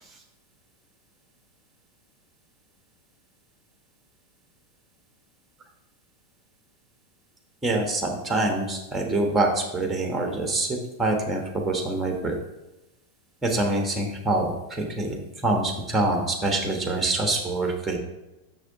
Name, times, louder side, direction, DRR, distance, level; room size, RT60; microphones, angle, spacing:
voice 1, 7.6-10.7 11.0-12.3 13.4-15.1 15.4-18.0, right 2 dB, 10° right, 2 dB, 1.3 m, -25 dB
6.4 x 6.3 x 3.6 m, 0.96 s
figure-of-eight pair, 90°, 0 cm